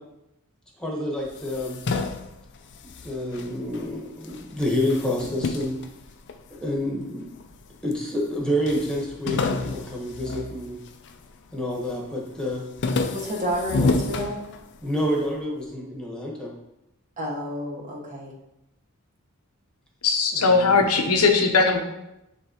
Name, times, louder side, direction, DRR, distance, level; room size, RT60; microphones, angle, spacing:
voice 1, 0.8-1.8 3.0-5.8 6.5-7.2 7.8-10.8 11.5-12.6 14.8-16.5 20.3-20.8, left 1 dB, 5° left, -3 dB, 1.2 m, -28 dB
sound 1, 1.2-3.9 4.2-6.7 7.3-8.0 8.3-8.4 8.7-11.2 11.6-12.1 12.4-15.0, left 3 dB, 55° left, 0.4 m, -29 dB
voice 2, 13.1-14.4 17.2-18.3, equal, 35° right, -3 dB, 1.2 m, -30 dB
voice 3, 20.0-21.8, left 4 dB, 85° left, 4 dB, 0.9 m, -19 dB
9.6 x 3.3 x 3.0 m, 0.89 s
head